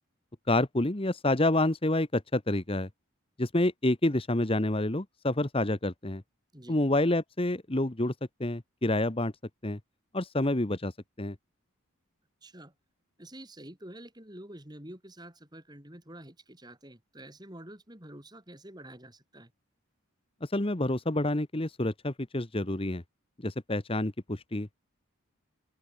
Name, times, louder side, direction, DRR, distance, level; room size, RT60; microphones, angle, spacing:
voice 1, 0.5-2.9 3.4-6.2 6.7-8.1 8.4-9.3 9.6-9.8 10.1-10.9 11.2-11.3 20.4-23.0 23.4-24.7, left 1 dB, 25° left, 1.2 m, -28 dB
voice 2, 12.4-12.7 13.2-19.5, right 1 dB, 20° right, 4.7 m, -48 dB
open air
head